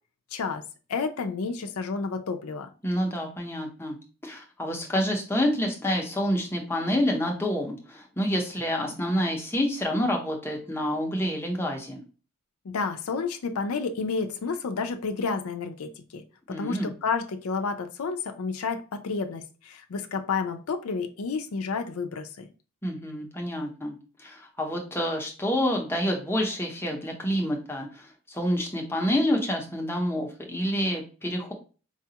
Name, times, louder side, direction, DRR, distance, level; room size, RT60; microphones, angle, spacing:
voice 1, 0.3-0.6 0.9-2.7 12.6-22.5, left 4 dB, 85° left, 6 dB, 0.5 m, -30 dB
voice 2, 2.8-4.0 4.2-12.0 16.5-16.9 22.8-31.5, equal, 10° left, 1 dB, 0.7 m, -28 dB
4.8 x 2.3 x 2.8 m, 0.35 s
head